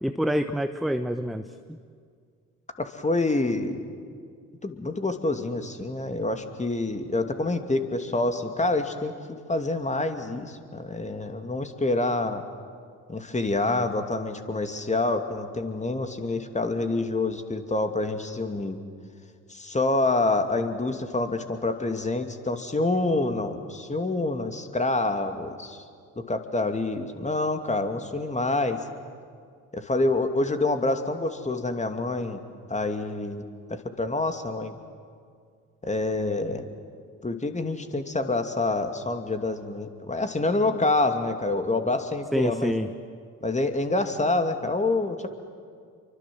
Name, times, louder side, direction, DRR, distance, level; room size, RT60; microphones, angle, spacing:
voice 1, 0.0-1.8 42.3-42.9, equal, ahead, 9 dB, 1.0 m, -27 dB
voice 2, 2.8-3.8 4.6-9.1 9.5-12.4 13.1-18.8 19.5-25.8 26.2-28.9 29.7-32.4 32.7-33.4 33.7-34.8 35.8-36.6 37.2-42.7 43.4-45.3, left 2 dB, 20° left, 6 dB, 2.7 m, -27 dB
29.5 x 24.5 x 7.8 m, 2.1 s
figure-of-eight pair, 50°, 37 cm